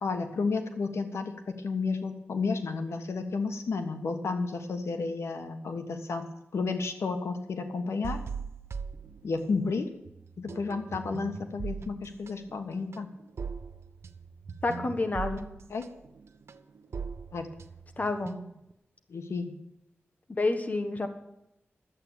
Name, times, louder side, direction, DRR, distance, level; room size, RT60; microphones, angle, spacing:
voice 1, 0.0-6.3 6.5-8.2 9.2-9.9 10.4-13.1 15.7-15.9 17.3-17.5 19.1-19.5, left 4 dB, 90° left, 7 dB, 1.3 m, -32 dB
sound 1, 8.0-9.8 10.1-18.7, right 5 dB, 75° right, 0.8 m, -40 dB
voice 2, 14.6-15.4 18.0-18.4 20.4-21.1, left 2 dB, 35° left, 7 dB, 1.5 m, -28 dB
11.5 x 8.3 x 8.8 m, 0.87 s
wide cardioid pair, 110°, 4 cm